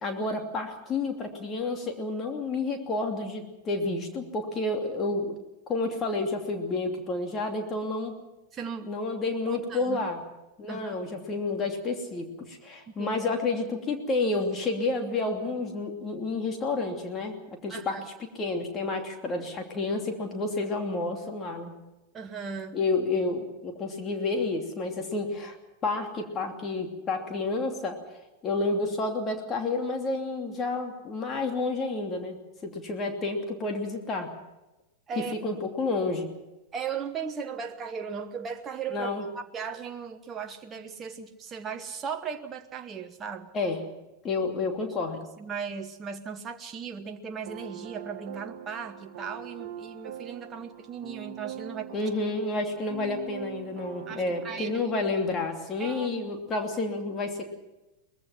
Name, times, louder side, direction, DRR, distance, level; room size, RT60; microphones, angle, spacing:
voice 1, 0.0-5.4 5.7-8.1 8.9-10.2 10.6-18.0 18.3-21.7 22.7-25.6 25.8-28.0 28.4-34.3 35.4-36.3 38.9-39.2 43.5-43.8 44.2-45.2 51.9-57.5, left 3 dB, 25° left, 3 dB, 2.8 m, -30 dB
voice 2, 8.5-8.9 9.5-10.0 10.7-11.0 12.9-13.2 17.7-18.0 22.1-22.8 35.1-35.3 36.7-43.5 45.4-52.0 54.1-54.9 55.8-56.1, right 6 dB, 25° right, 6 dB, 1.2 m, -37 dB
sound 1, 47.4-54.8, right 10 dB, 50° right, 1.9 m, -42 dB
23.5 x 20.5 x 5.9 m, 1.0 s
figure-of-eight pair, 90°, 0 cm